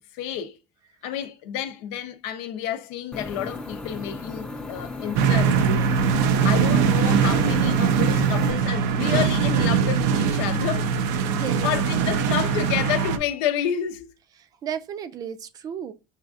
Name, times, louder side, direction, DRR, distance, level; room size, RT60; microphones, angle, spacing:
voice 1, 0.1-0.6 1.0-5.9 6.2-10.9 11.4-14.1, left 9 dB, 85° left, 0.6 m, -30 dB
sound 1, 3.1-8.5, left 3 dB, 10° left, 0.6 m, -36 dB
voice 2, 4.8-5.2 11.3-11.7 14.6-15.9, right 9 dB, 40° right, 0.5 m, -34 dB
sound 2, 5.2-13.2, right 6 dB, 90° right, 0.5 m, -21 dB
6.4 x 2.5 x 2.3 m
cardioid pair, 125°, 10 cm